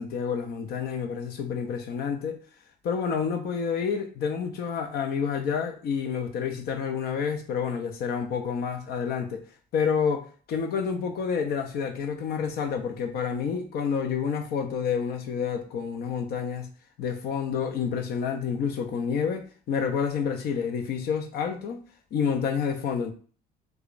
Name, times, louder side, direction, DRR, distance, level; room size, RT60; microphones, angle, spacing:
voice 1, 0.0-2.4 2.8-9.4 9.7-16.7 17.0-21.8 22.1-23.1, left 6 dB, 70° left, 0.6 m, -29 dB
4.9 x 2.4 x 2.5 m
cardioid pair, 110°, 17 cm